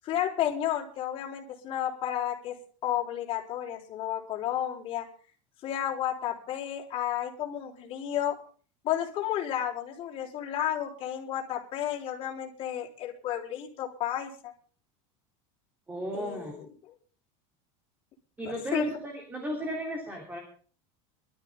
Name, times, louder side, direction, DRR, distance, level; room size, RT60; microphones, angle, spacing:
voice 1, 0.0-2.6 2.8-5.1 5.6-8.4 8.8-14.5 16.1-16.9 18.7-18.9, left 11 dB, 35° left, -2 dB, 4.0 m, -32 dB
voice 2, 15.9-16.5 18.4-20.4, equal, 10° right, 2 dB, 3.2 m, -34 dB
23.0 x 13.0 x 3.6 m, 0.42 s
supercardioid pair, 160°, 16 cm